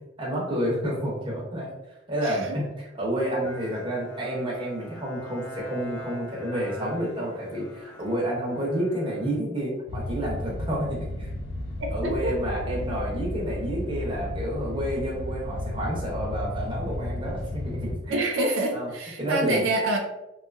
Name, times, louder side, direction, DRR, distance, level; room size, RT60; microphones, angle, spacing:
voice 1, 0.2-1.7 2.1-11.3 11.9-18.3 18.7-18.9 19.2-19.6, right 1 dB, 25° right, -4 dB, 0.7 m, -30 dB
voice 2, 2.2-2.6 12.0-12.4 18.1-20.0, right 2 dB, 80° right, 1 dB, 0.4 m, -26 dB
Bowed string instrument, 3.4-10.1, equal, 20° left, 0.8 m, -43 dB
sound 1, 9.9-17.9, left 1 dB, 55° left, 0.3 m, -33 dB
2.6 x 2.3 x 2.4 m, 1.0 s
head